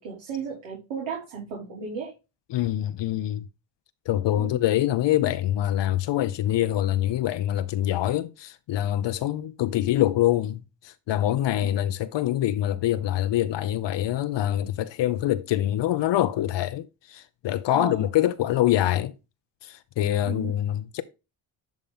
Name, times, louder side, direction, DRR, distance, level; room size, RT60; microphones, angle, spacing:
voice 1, 0.0-2.1 4.4-4.6 11.6-11.8 17.7-18.1 20.2-20.6, right 6 dB, 80° right, 3.0 m, -35 dB
voice 2, 2.5-3.4 4.1-19.1 19.6-21.0, left 13 dB, 60° left, 0.8 m, -25 dB
10.5 x 3.7 x 3.6 m
supercardioid pair, 65°, 49 cm